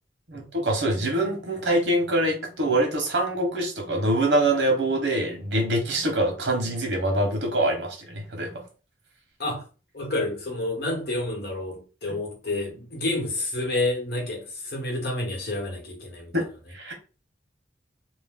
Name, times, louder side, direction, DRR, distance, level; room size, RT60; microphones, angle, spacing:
voice 1, 0.3-8.6 16.3-16.4 16.7-16.9, right 1 dB, 90° right, 1.1 m, -24 dB
voice 2, 9.9-16.3, left 2 dB, 60° left, 1.1 m, -29 dB
2.7 x 2.1 x 3.5 m
head